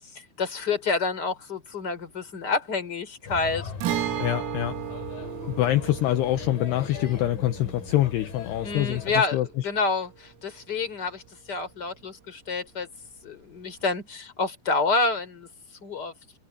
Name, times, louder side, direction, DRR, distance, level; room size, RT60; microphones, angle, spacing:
voice 1, 0.4-3.6 8.6-11.2 11.5-12.9 13.2-15.5 15.8-16.1, left 3 dB, 20° left, 3.9 m, -28 dB
Male speech man speaking / Child speech kid speaking / Chatter, 3.2-9.2, left 6 dB, 45° left, 4.9 m, -39 dB
Guitar, 3.8-11.4 11.7-11.8 13.8-13.9, right 11 dB, 75° right, 4.8 m, -35 dB
voice 2, 4.2-4.8 5.5-9.5, left 14 dB, 75° left, 2.5 m, -25 dB
omnidirectional pair, 6.0 m